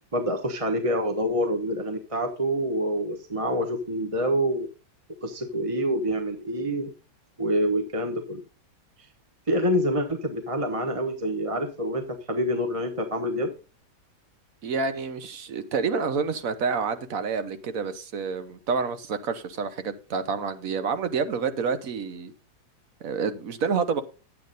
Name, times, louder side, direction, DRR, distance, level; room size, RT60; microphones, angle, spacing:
voice 1, 0.1-4.7 5.2-6.9 7.4-8.4 9.5-13.5, equal, 25° right, 1.0 m, -26 dB
voice 2, 14.6-22.3 23.0-24.0, right 5 dB, 55° right, 1.3 m, -28 dB
10.5 x 8.5 x 4.0 m
omnidirectional pair, 1.9 m